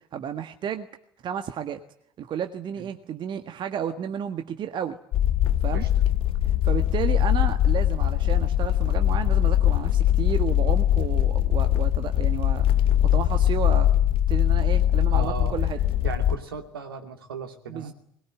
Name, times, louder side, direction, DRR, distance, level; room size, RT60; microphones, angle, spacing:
voice 1, 0.1-0.9 1.2-1.8 2.2-5.0 5.6-5.8 6.6-12.7 13.0-13.9 14.3-15.8 17.7-17.9, right 8 dB, 40° right, 7 dB, 1.6 m, -32 dB
sound 1, 5.1-16.4, left 12 dB, 45° left, 1.0 m, -22 dB
voice 2, 15.1-15.6 16.0-17.9, right 6 dB, 75° right, 5 dB, 2.7 m, -36 dB
22.0 x 21.5 x 9.8 m, 0.70 s
figure-of-eight pair, 60°, 12 cm